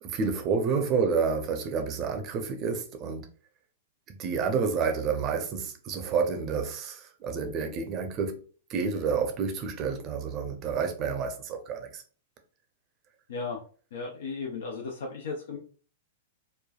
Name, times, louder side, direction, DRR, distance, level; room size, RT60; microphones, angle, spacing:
voice 1, 0.0-3.3 4.1-8.4 8.7-12.0, right 5 dB, 35° right, 0.6 m, -29 dB
voice 2, 13.3-13.6 13.9-15.6, left 4 dB, 70° left, 0.5 m, -35 dB
3.1 x 2.2 x 2.3 m
hypercardioid pair, 110°, 0 cm